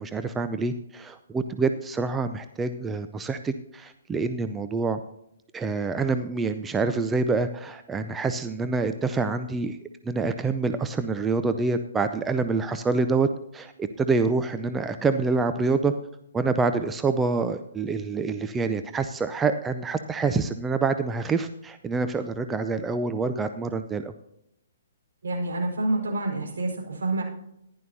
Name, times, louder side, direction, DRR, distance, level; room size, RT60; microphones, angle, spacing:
voice 1, 0.0-5.0 5.5-9.8 10.0-13.3 13.5-15.9 16.3-24.1, right 4 dB, 10° right, 8 dB, 0.5 m, -26 dB
voice 2, 25.2-27.2, right 2 dB, 65° right, 0 dB, 4.9 m, -27 dB
15.0 x 11.0 x 2.7 m, 0.79 s
figure-of-eight pair, 125°, 0 cm